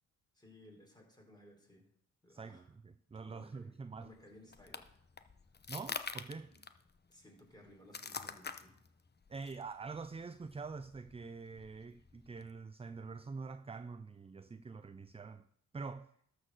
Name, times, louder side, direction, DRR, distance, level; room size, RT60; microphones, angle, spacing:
voice 1, 0.3-1.9 2.2-2.7 3.2-5.0 6.5-6.6 7.1-8.8, left 1 dB, 10° left, 4.4 m, -59 dB
voice 2, 2.3-4.1 5.7-6.5 9.3-15.5 15.7-16.1, right 4 dB, 15° right, 0.5 m, -45 dB
sound 1, 3.9-12.5, left 5 dB, 25° left, 0.8 m, -48 dB
12.5 x 4.7 x 6.4 m
supercardioid pair, 45°, 37 cm